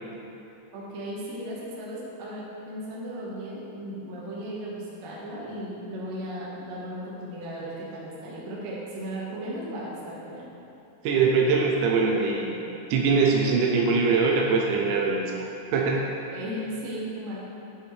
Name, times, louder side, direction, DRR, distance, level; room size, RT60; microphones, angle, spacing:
voice 1, 0.7-10.5 16.3-17.4, equal, 65° right, -6 dB, 1.7 m, -36 dB
voice 2, 11.0-12.6 12.9-16.1, right 4 dB, 80° right, -1 dB, 2.8 m, -23 dB
9.9 x 7.2 x 3.3 m, 3.0 s
omnidirectional pair, 5.4 m